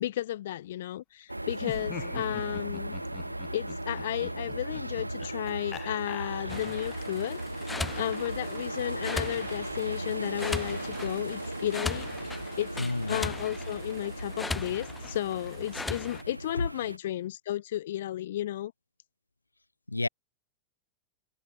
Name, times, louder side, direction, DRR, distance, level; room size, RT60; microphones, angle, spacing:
voice 1, 0.0-2.9 3.5-7.7 8.0-18.7, left 13 dB, 60° left, 2.2 m, -33 dB
sound 1, 1.3-17.0, right 1 dB, 90° right, 1.4 m, -37 dB
Laughter, 1.5-7.0, left 10 dB, 30° left, 2.6 m, -45 dB
sound 2, 6.5-16.2, left 3 dB, 10° left, 2.4 m, -39 dB
voice 2, 12.8-13.3 16.5-16.6 19.9-20.1, left 2 dB, 85° left, 1.3 m, -30 dB
figure-of-eight pair, 90°, 0 cm